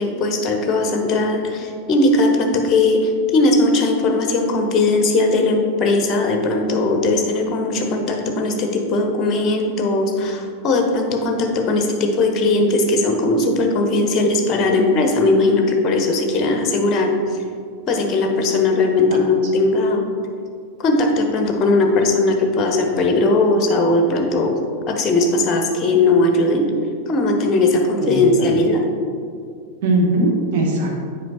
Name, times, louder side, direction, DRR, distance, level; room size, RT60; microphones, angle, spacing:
voice 1, 0.0-17.4 17.9-20.0 20.8-24.6 24.9-26.7 27.1-28.8, left 2 dB, 30° left, 3 dB, 0.8 m, -18 dB
voice 2, 28.0-28.5 29.8-31.0, right 2 dB, 50° right, -1 dB, 1.2 m, -20 dB
7.6 x 4.9 x 2.7 m, 2.2 s
figure-of-eight pair, 90°, 0 cm